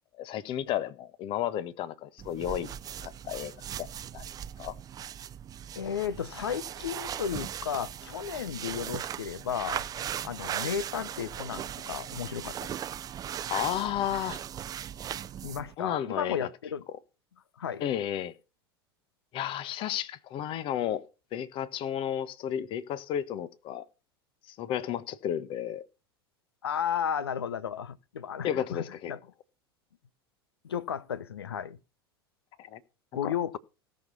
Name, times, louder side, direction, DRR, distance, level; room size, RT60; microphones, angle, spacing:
voice 1, 0.2-2.7 3.0-3.5 3.8-3.9 4.1-4.2 4.6-4.7 13.5-14.4 15.8-16.5 17.8-18.3 19.3-21.0 21.3-23.8 24.6-25.8 28.4-29.1 32.6-32.8 33.2-33.6, left 10 dB, 40° left, 1.3 m, -32 dB
sound 1, 2.2-15.7, right 10 dB, 30° right, 0.7 m, -38 dB
voice 2, 5.7-9.9 10.2-12.7 15.4-16.8 17.6-17.8 26.6-29.2 30.6-31.8 33.1-33.6, left 8 dB, 75° left, 1.0 m, -34 dB
17.0 x 6.7 x 5.5 m
figure-of-eight pair, 80°, 13 cm